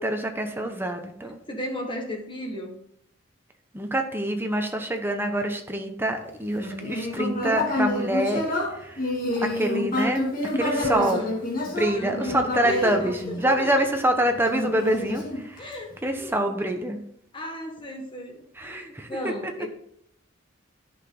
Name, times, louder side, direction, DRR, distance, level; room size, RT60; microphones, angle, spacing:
voice 1, 0.0-1.4 3.7-9.0 9.4-11.3 11.7-15.7 16.0-17.0 18.6-19.5, right 1 dB, 10° right, 4 dB, 1.0 m, -26 dB
voice 2, 1.5-2.8 10.7-11.4 11.9-12.9 13.3-13.7 15.6-16.5 17.3-19.7, left 1 dB, 25° left, 2 dB, 1.6 m, -35 dB
Human voice, 6.5-13.9 14.5-15.9, left 1 dB, 45° left, 2.4 m, -28 dB
10.5 x 6.1 x 3.9 m, 0.70 s
head